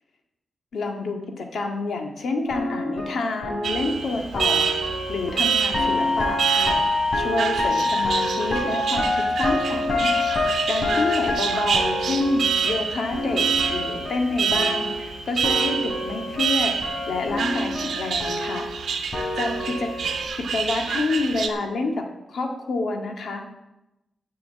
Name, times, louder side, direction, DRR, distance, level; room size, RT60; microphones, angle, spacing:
voice 1, 0.7-4.8 5.1-6.8 7.1-10.1 10.7-16.7 17.1-18.7 19.3-19.9 20.3-23.5, left 3 dB, 80° left, 3 dB, 1.9 m, -28 dB
sound 1, 2.5-15.2 15.4-20.2, left 2 dB, 50° left, 3.7 m, -27 dB
Alarm, 3.6-21.5, right 6 dB, 80° right, 1.2 m, -27 dB
9.9 x 6.9 x 8.2 m, 0.92 s
cardioid pair, 90°, 0 cm